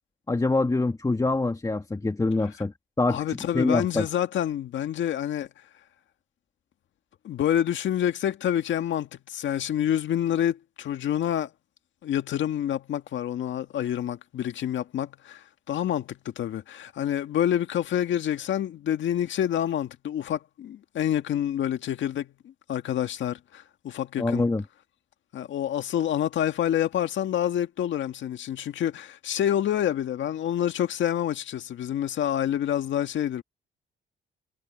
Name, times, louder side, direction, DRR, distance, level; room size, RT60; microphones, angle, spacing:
voice 1, 0.3-4.1 24.2-24.6, left 2 dB, 15° left, 2.2 m, -25 dB
voice 2, 3.1-5.5 7.2-11.5 12.0-22.3 22.7-24.4 25.3-33.4, left 10 dB, 70° left, 1.9 m, -27 dB
cardioid pair, 90°, 20 cm